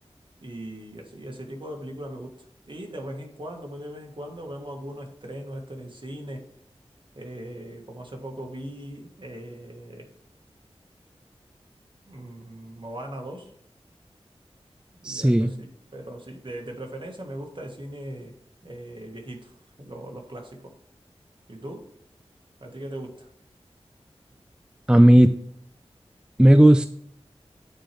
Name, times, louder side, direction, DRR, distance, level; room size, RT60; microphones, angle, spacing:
voice 1, 0.4-2.3 2.7-6.4 7.1-10.1 12.1-13.5 14.9-18.3 18.6-20.7 21.5-21.9 22.6-23.3, right 1 dB, 50° right, 1 dB, 1.7 m, -39 dB
voice 2, 15.0-15.5 24.9-25.3 26.4-26.9, right 1 dB, 10° right, 10 dB, 0.3 m, -14 dB
9.1 x 4.5 x 3.4 m, 0.69 s
wide cardioid pair, 65°, 11 cm